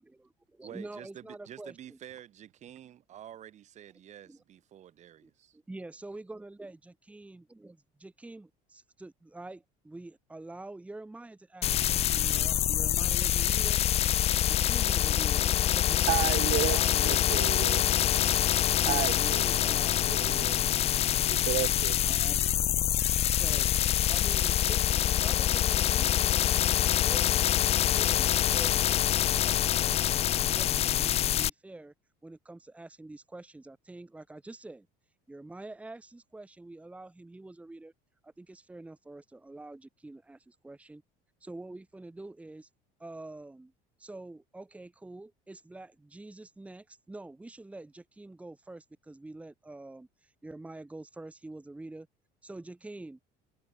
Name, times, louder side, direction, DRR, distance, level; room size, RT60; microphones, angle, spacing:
voice 1, 0.0-2.0 4.3-4.4 5.2-13.8 14.5-17.4 18.8-19.9 20.3-21.3 22.0-22.5 23.3-23.8 24.1-27.4 27.7-31.9 32.2-34.9 35.3-37.9 38.2-41.0 41.4-42.7 43.0-43.7 44.0-52.1 52.4-53.2, right 2 dB, 5° right, 1.7 m, -46 dB
voice 2, 0.6-5.6, right 11 dB, 40° right, 4.7 m, -49 dB
sound 1, 11.6-31.5, left 11 dB, 35° left, 0.5 m, -26 dB
voice 3, 16.1-16.8 17.0-18.1 18.8-19.8 20.0-20.6 21.3-22.1, right 26 dB, 70° right, 0.8 m, -33 dB
cardioid pair, 140°, 18 cm